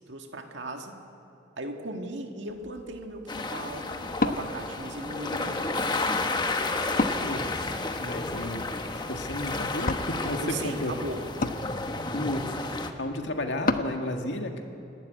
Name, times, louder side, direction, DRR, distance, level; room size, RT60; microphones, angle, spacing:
voice 1, 0.1-1.0 1.6-3.9 4.2-6.1 10.3-11.3, right 2 dB, 85° right, 3 dB, 1.8 m, -38 dB
Wood, 2.5-14.0, left 2 dB, 50° left, 1.0 m, -35 dB
sound 1, 3.3-12.9, left 3 dB, 25° left, 1.2 m, -32 dB
voice 2, 7.2-7.6 8.0-8.7 8.9-10.9 12.1-14.6, left 1 dB, 80° left, 4 dB, 1.9 m, -33 dB
29.0 x 12.0 x 9.2 m, 2.6 s
head